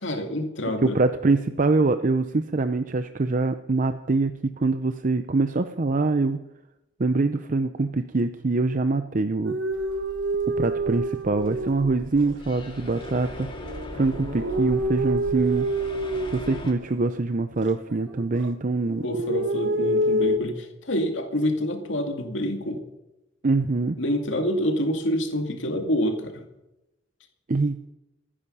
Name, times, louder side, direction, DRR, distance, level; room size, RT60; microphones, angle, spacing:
voice 1, 0.0-1.0 19.0-22.8 24.0-26.4, equal, 75° left, 4 dB, 2.3 m, -27 dB
voice 2, 0.8-4.3 4.6-6.4 7.0-9.6 10.6-13.5 13.9-15.7 16.3-19.1 23.4-24.0 27.5-27.9, right 3 dB, 45° right, 9 dB, 0.6 m, -24 dB
sound 1, 9.4-12.4 12.9-17.1 17.6-18.5 18.8-20.4, right 1 dB, 75° right, 1.3 m, -28 dB
sound 2, 9.7-16.7, left 1 dB, 25° left, 2.5 m, -40 dB
25.5 x 10.0 x 5.6 m, 0.93 s
head